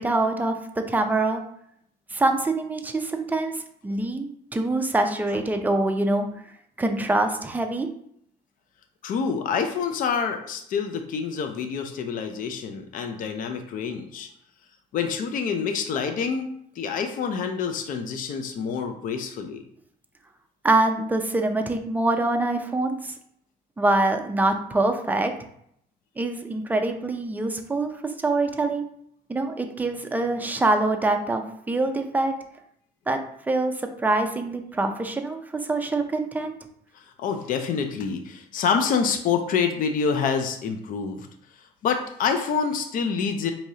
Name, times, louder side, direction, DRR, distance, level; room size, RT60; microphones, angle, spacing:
voice 1, 0.0-1.4 2.1-6.3 6.8-7.9 20.6-23.1 23.8-25.3 26.2-28.9 29.3-32.3 33.1-33.2 33.5-33.7 34.0-36.5, right 2 dB, 10° right, 5 dB, 0.5 m, -24 dB
voice 2, 9.0-14.3 14.9-16.5 16.8-19.6 36.9-41.3 41.8-43.5, left 6 dB, 55° left, 6 dB, 0.5 m, -27 dB
4.6 x 2.8 x 2.7 m, 0.70 s
cardioid pair, 110°, 17 cm